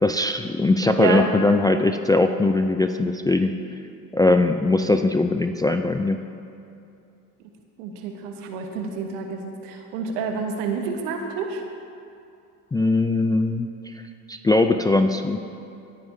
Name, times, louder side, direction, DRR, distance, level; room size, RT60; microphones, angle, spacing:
voice 1, 0.0-3.5 4.1-6.2 12.7-13.7 14.3-15.4, left 2 dB, 10° left, 6 dB, 0.3 m, -20 dB
voice 2, 7.8-11.6, right 5 dB, 75° right, 4 dB, 1.3 m, -28 dB
17.5 x 9.2 x 2.7 m, 2.5 s
hypercardioid pair, 65°, 46 cm